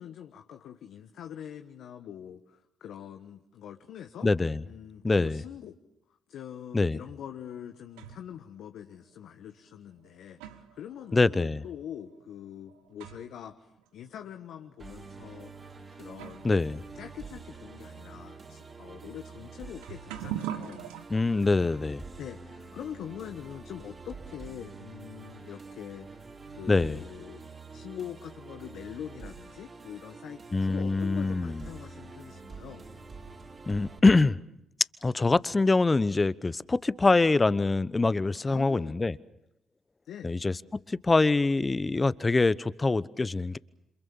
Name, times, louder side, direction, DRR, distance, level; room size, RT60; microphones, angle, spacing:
voice 1, 0.0-4.3 4.7-5.8 6.3-15.6 15.9-16.5 16.9-20.9 22.2-32.8 38.4-39.0 40.0-40.4, left 9 dB, 70° left, 1.3 m, -44 dB
voice 2, 4.2-4.6 5.0-5.4 6.7-7.0 11.1-11.6 16.4-16.8 21.1-22.0 26.7-27.0 30.5-31.6 33.7-34.4 35.0-39.2 40.2-43.6, left 3 dB, 25° left, 1.0 m, -24 dB
sound 1, 7.3-8.4 9.3-9.4 10.0-13.5 13.8-13.9 14.7-14.8 15.7-15.8 16.1-21.0, right 11 dB, 80° right, 1.2 m, -43 dB
Musical instrument, 14.8-34.0, right 4 dB, 40° right, 5.6 m, -47 dB
28.5 x 27.0 x 7.1 m
hypercardioid pair, 50°, 0 cm